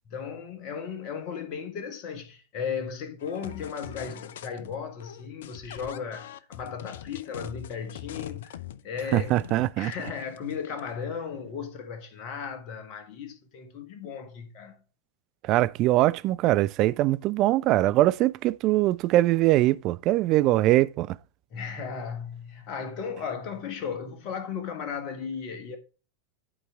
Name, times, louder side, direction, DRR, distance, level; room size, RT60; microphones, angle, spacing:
voice 1, 0.1-8.5 8.8-9.3 9.8-14.8 21.5-25.8, left 6 dB, 40° left, 1.4 m, -35 dB
sound 1, 3.2-4.8 5.0-11.0, left 11 dB, 60° left, 0.6 m, -43 dB
voice 2, 9.1-9.9 15.4-21.2, right 16 dB, 40° right, 0.4 m, -22 dB
11.0 x 4.6 x 3.5 m
figure-of-eight pair, 90°, 0 cm